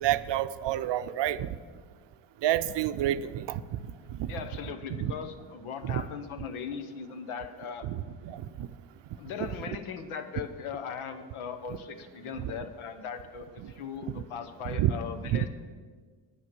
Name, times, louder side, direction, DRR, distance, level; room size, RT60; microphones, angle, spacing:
voice 1, 0.0-1.5 2.4-3.8 4.2-4.3 4.9-5.1 5.8-6.0 7.8-8.7 11.7-11.8 13.6-13.7 14.7-14.9 15.2-15.5, right 12 dB, 60° right, 13 dB, 0.6 m, -29 dB
voice 2, 4.3-7.9 9.2-15.5, left 6 dB, 85° left, 9 dB, 1.1 m, -39 dB
9.4 x 8.8 x 6.1 m, 1.5 s
cardioid pair, 95°, 49 cm